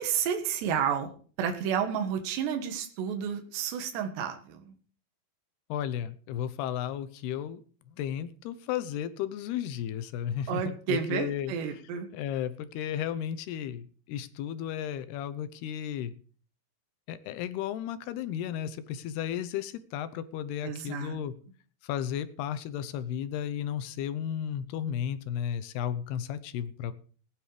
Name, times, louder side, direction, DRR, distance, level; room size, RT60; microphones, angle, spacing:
voice 1, 0.0-4.7 10.5-12.1 20.6-21.2, right 8 dB, 80° right, 5 dB, 3.8 m, -31 dB
voice 2, 5.7-7.6 8.0-11.5 12.1-16.1 17.1-21.3 21.8-26.9, left 10 dB, 75° left, 13 dB, 2.8 m, -34 dB
18.5 x 9.9 x 5.0 m, 0.42 s
omnidirectional pair, 5.0 m